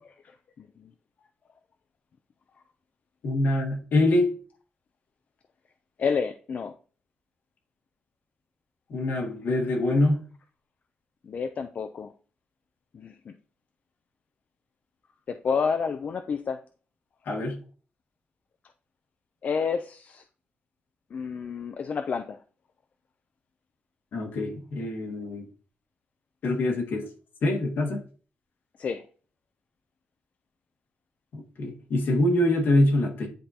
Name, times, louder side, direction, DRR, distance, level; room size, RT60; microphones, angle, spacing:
voice 1, 0.0-0.9 6.0-6.7 11.2-12.1 12.9-13.3 15.3-16.6 19.4-20.2 21.1-22.4 28.8-29.1, left 5 dB, 45° left, 0.4 m, -30 dB
voice 2, 3.2-4.4 8.9-10.2 17.3-17.6 24.1-25.4 26.4-27.0 27.4-28.0 31.3-33.3, left 1 dB, 70° left, 1.6 m, -24 dB
9.9 x 3.8 x 2.8 m
wide cardioid pair, 160°, 3 cm